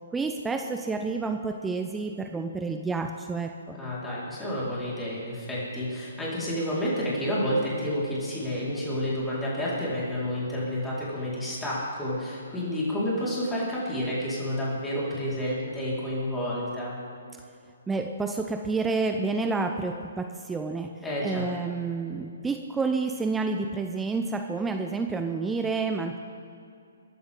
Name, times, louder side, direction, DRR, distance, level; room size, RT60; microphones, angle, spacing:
voice 1, 0.1-3.8 17.9-26.2, right 4 dB, 10° right, 6 dB, 0.6 m, -29 dB
voice 2, 3.7-16.9 21.0-21.4, equal, 10° left, -8 dB, 4.6 m, -30 dB
23.5 x 11.5 x 3.8 m, 2.5 s
figure-of-eight pair, 135°, 0 cm